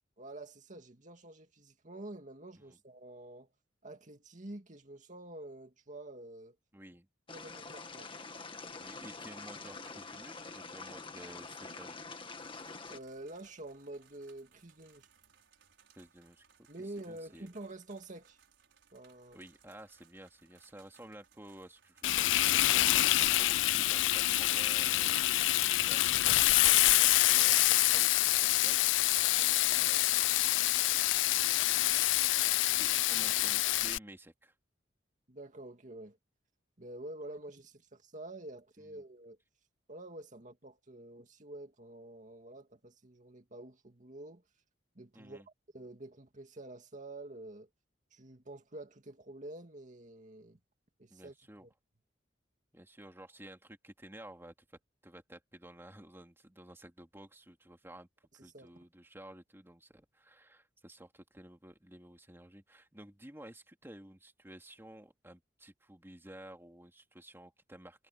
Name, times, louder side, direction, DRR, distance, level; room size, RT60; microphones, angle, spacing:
voice 1, 0.2-3.5 3.8-6.6 7.3-8.1 12.9-15.1 16.7-18.4 18.9-19.4 35.3-36.2 36.8-39.4 39.9-44.4 45.0-45.4 45.7-47.7 48.1-50.6 51.0-51.3 51.6-51.7 58.4-58.7, right 2 dB, 40° right, 2.2 m, -48 dB
voice 2, 6.7-7.1 8.8-12.1 16.0-17.5 19.3-34.5 38.8-39.0 45.1-45.5 51.1-51.7 52.7-68.1, right 1 dB, 15° right, 2.5 m, -53 dB
sound 1, 7.3-13.0, left 4 dB, 30° left, 1.8 m, -46 dB
sound 2, 12.3-28.3, right 7 dB, 90° right, 5.4 m, -66 dB
Frying (food), 22.0-34.0, left 16 dB, 85° left, 0.4 m, -26 dB
head